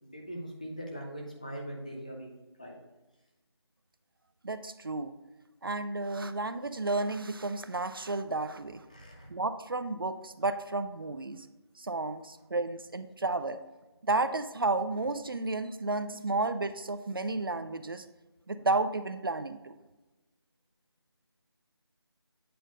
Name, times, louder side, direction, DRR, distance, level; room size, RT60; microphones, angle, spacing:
voice 1, 0.0-2.3 2.6-2.8 8.9-9.3, equal, 15° left, -1 dB, 0.5 m, -41 dB
voice 2, 4.4-5.1 5.6-8.8 9.3-11.5 11.8-13.6 14.0-18.1 18.5-19.7, right 3 dB, 55° right, 11 dB, 0.4 m, -32 dB
8.3 x 3.9 x 3.8 m, 1.1 s
figure-of-eight pair, 170°, 14 cm